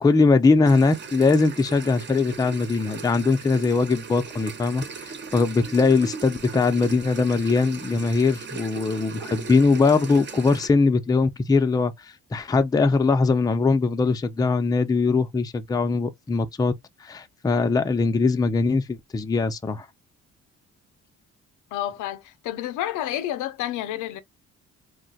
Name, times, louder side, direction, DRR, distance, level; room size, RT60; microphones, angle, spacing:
voice 1, 0.0-11.9 12.3-16.7 17.0-19.9, left 4 dB, 15° left, 0.4 m, -21 dB
sound 1, 0.6-10.7, right 5 dB, 35° right, 0.6 m, -38 dB
voice 2, 21.7-24.2, left 13 dB, 85° left, 0.5 m, -30 dB
2.3 x 2.1 x 3.9 m
cardioid pair, 90°, 30 cm